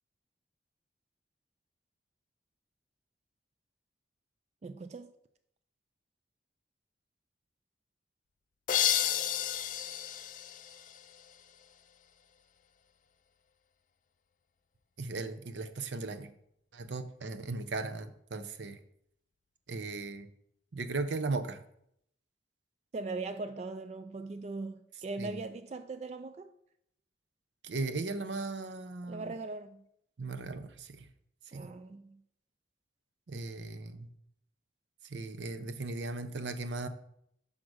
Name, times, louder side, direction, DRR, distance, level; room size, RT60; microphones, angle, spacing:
voice 1, 4.6-5.1 22.9-26.5 29.1-29.8 31.5-32.2, right 3 dB, 40° right, 0.3 m, -40 dB
sound 1, 8.7-11.4, left 11 dB, 45° left, 0.3 m, -32 dB
voice 2, 15.0-16.3 16.7-18.8 19.7-20.3 20.7-21.6 25.2-25.3 27.6-29.3 30.2-31.1 31.5-31.7 33.3-34.1 35.0-36.9, right 3 dB, 85° right, 0.6 m, -37 dB
6.3 x 3.7 x 6.2 m
head